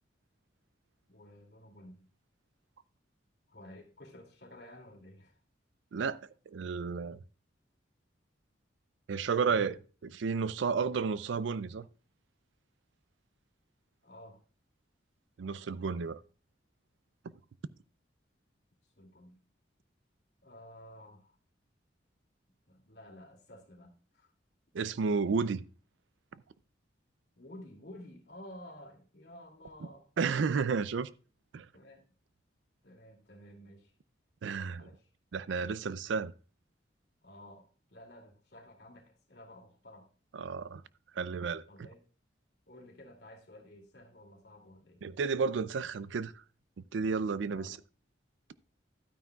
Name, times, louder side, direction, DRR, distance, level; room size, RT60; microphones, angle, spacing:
voice 1, 1.1-2.0 3.5-5.4 14.0-14.4 19.0-19.4 20.4-21.3 22.7-24.3 27.3-30.1 31.7-32.0 32.8-33.9 34.7-35.1 37.2-40.1 41.7-42.0 42.7-45.0 47.5-47.8, left 1 dB, 60° left, 2.6 m, -52 dB
voice 2, 6.5-7.2 9.1-11.9 15.4-16.2 24.7-25.6 30.2-31.1 31.5-31.7 34.4-34.9 35.3-36.3 40.3-40.8 41.2-41.9 45.0-46.3 46.9-47.8, right 5 dB, 75° right, 0.4 m, -32 dB
12.0 x 9.2 x 2.3 m
head